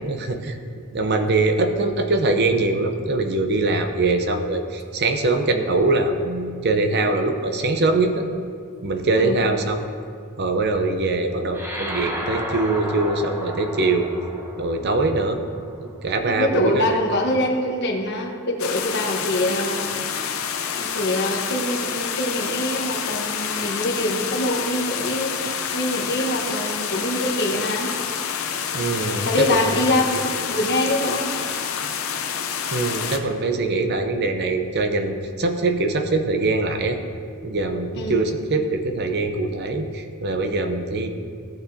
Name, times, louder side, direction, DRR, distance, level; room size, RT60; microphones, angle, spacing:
voice 1, 0.0-0.6 0.9-8.3 8.8-9.8 10.4-14.1 14.6-15.4 15.8-17.0 28.7-29.6 32.7-37.0 37.4-41.1, right 2 dB, 50° right, 6 dB, 0.7 m, -22 dB
sound 1, 11.5-16.3, equal, 10° right, 0.9 m, -33 dB
voice 2, 16.2-20.0 20.8-27.9 29.2-31.3 38.0-38.3, left 1 dB, 50° left, 0 dB, 1.2 m, -24 dB
sound 2, 18.6-33.2, left 7 dB, 70° left, 0.7 m, -28 dB
16.0 x 6.6 x 2.8 m, 2.3 s
head